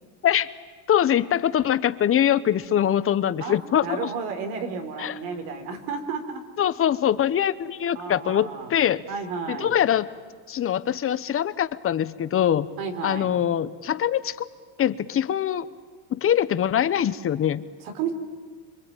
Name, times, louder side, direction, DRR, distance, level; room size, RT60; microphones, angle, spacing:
voice 1, 0.9-4.1 5.0-5.2 6.6-9.0 9.5-10.1 10.5-12.7 13.0-14.5 14.8-15.7 16.1-17.6, left 10 dB, 30° left, 14 dB, 1.0 m, -23 dB
voice 2, 3.4-6.4 7.9-8.7 9.1-9.7 12.8-13.3 17.8-18.1, right 5 dB, 80° right, 5 dB, 4.2 m, -32 dB
26.5 x 24.0 x 9.1 m, 1.5 s
cardioid pair, 135°, 45 cm